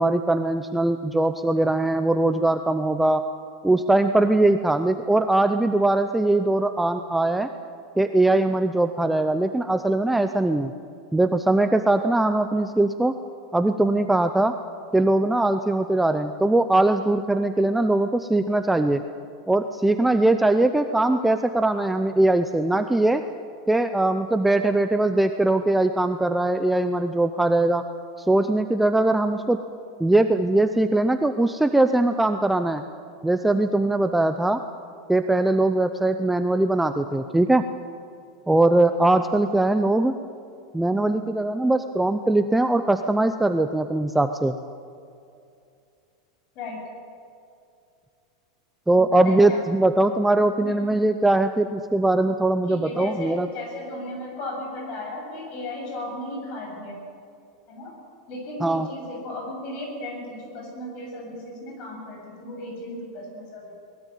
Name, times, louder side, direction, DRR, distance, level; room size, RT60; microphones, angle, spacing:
voice 1, 0.0-3.2 3.6-7.5 8.0-10.7 11.1-13.1 13.5-14.5 14.9-19.0 19.5-23.2 23.7-27.8 28.2-29.6 30.0-32.8 33.2-34.6 35.1-37.6 38.5-40.1 40.7-44.5 48.9-53.5 58.6-58.9, right 2 dB, 5° right, 8 dB, 0.6 m, -21 dB
voice 2, 49.2-49.6 50.6-50.9 52.7-57.0 57.7-57.9 58.3-63.8, left 1 dB, 35° left, 1 dB, 7.7 m, -35 dB
22.5 x 20.0 x 9.2 m, 2.5 s
supercardioid pair, 170°, 3 cm